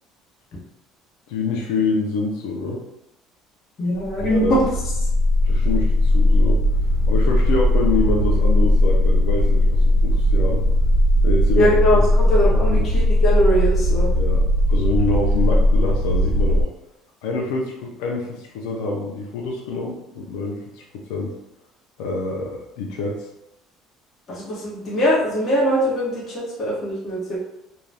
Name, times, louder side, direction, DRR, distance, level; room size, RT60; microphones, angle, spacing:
voice 1, 1.3-2.8 4.2-4.6 5.4-6.6 7.1-10.7 11.2-12.0 12.5-12.8 14.1-14.4 14.7-16.7 17.2-21.3 22.0-23.3, left 3 dB, 85° left, 0 dB, 0.5 m, -26 dB
voice 2, 3.8-4.6 11.5-14.1 24.3-27.4, equal, 35° left, -7 dB, 1.0 m, -21 dB
sound 1, 4.0-16.6, left 1 dB, 35° right, 1.0 m, -18 dB
2.6 x 2.2 x 3.3 m, 0.87 s
cardioid pair, 115°, 0 cm